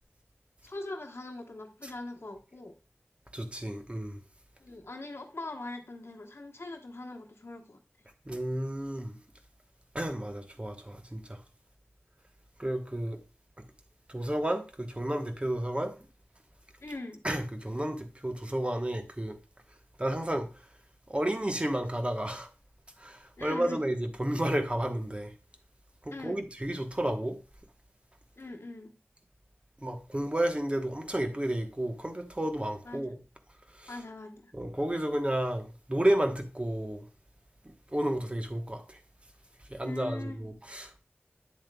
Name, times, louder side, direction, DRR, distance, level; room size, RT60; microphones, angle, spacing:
voice 1, 0.6-2.7 4.6-7.8 16.8-17.2 23.4-23.8 26.1-26.5 28.4-28.9 32.8-33.1 33.9-34.5 39.8-40.5, left 2 dB, 70° left, 1.0 m, -42 dB
voice 2, 3.3-4.2 8.3-9.2 9.9-11.4 12.6-13.2 14.1-15.9 17.2-19.4 20.0-20.5 21.1-22.5 23.0-25.3 26.1-27.4 29.8-33.2 33.8-33.9 34.5-37.0 37.9-39.0 39.7-41.0, right 1 dB, 25° right, 1.0 m, -31 dB
8.5 x 7.3 x 2.2 m
wide cardioid pair, 50°, 4 cm